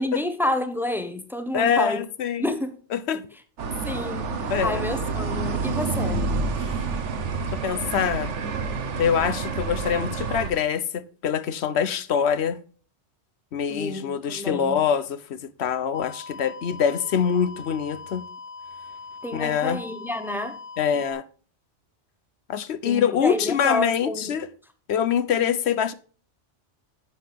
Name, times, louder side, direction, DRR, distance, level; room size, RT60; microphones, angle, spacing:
voice 1, 0.0-2.0 2.4-2.7 3.8-6.3 13.7-14.8 19.2-20.6 22.8-24.3, left 1 dB, ahead, 0.8 m, -29 dB
voice 2, 1.5-2.5 2.9-3.2 4.5-4.8 6.6-6.7 7.5-8.3 9.0-12.6 13.5-18.2 19.3-19.8 20.8-21.2 22.5-24.5 24.9-25.9, left 8 dB, 65° left, 0.9 m, -24 dB
sound 1, 3.6-10.5, right 4 dB, 75° right, 1.3 m, -28 dB
sound 2, 15.9-21.1, left 4 dB, 50° left, 1.7 m, -41 dB
10.0 x 7.6 x 3.4 m
omnidirectional pair, 1.2 m